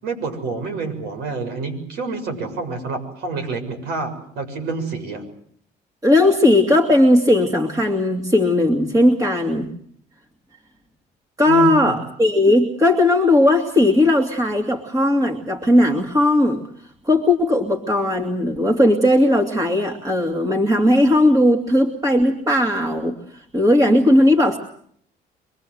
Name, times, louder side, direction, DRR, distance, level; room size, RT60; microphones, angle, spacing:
voice 1, 0.0-5.2 11.5-12.0, right 4 dB, 75° right, 6 dB, 7.1 m, -28 dB
voice 2, 6.0-9.7 11.4-16.7 17.0-24.6, left 1 dB, 20° right, 4 dB, 2.4 m, -17 dB
25.5 x 22.0 x 7.8 m, 0.63 s
cardioid pair, 110°, 17 cm